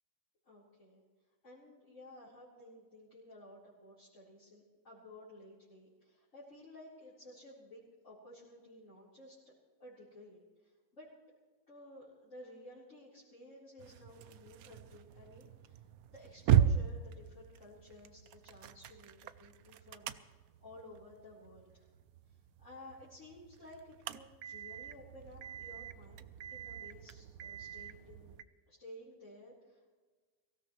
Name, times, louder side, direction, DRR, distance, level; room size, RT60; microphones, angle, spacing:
voice 1, 0.4-1.0 1.4-9.5 9.8-11.1 11.7-15.8 16.1-21.8 22.3-28.4 28.7-29.9, left 1 dB, 40° left, -10 dB, 4.6 m, -55 dB
sound 1, 13.8-28.4, right 10 dB, 70° right, 1.0 m, -37 dB
23.0 x 16.0 x 3.2 m, 1.4 s
omnidirectional pair, 1.9 m